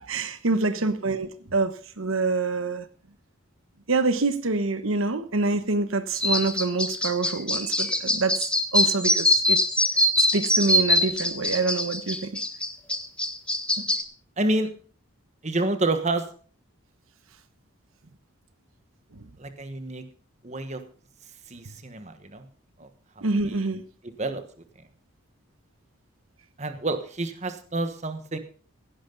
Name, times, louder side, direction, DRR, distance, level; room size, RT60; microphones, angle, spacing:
voice 1, 0.0-2.9 3.9-8.5 8.7-9.6 10.3-12.4 13.8-13.9 19.1-19.2 23.2-23.8, right 3 dB, 80° right, 1.1 m, -26 dB
sound 1, 6.2-14.0, left 1 dB, 5° left, 0.9 m, -23 dB
voice 2, 14.4-14.7 15.4-16.3 19.4-20.0 20.4-20.8 21.5-22.5 22.8-22.9 23.2-23.7 24.0-24.4 26.6-28.4, right 2 dB, 35° right, 1.4 m, -29 dB
16.0 x 11.5 x 4.0 m
head